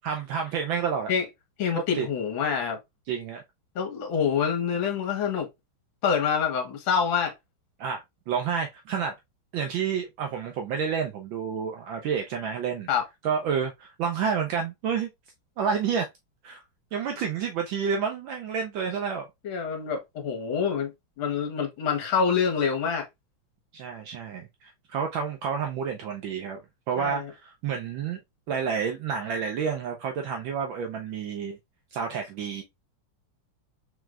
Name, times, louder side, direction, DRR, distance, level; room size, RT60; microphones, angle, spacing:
voice 1, 0.0-1.1 1.9-2.1 3.1-3.4 7.8-9.1 9.5-12.9 13.2-15.1 15.6-16.1 16.4-16.6 16.9-19.3 23.7-26.6 26.9-28.2 28.5-31.6 31.9-32.6, right 6 dB, 75° right, 1.3 m, -29 dB
voice 2, 1.6-2.8 3.7-5.5 6.0-7.3 12.9-13.0 19.4-20.9 21.2-23.1 27.0-27.3, left 6 dB, 70° left, 1.8 m, -26 dB
4.6 x 3.2 x 2.4 m
omnidirectional pair, 2.4 m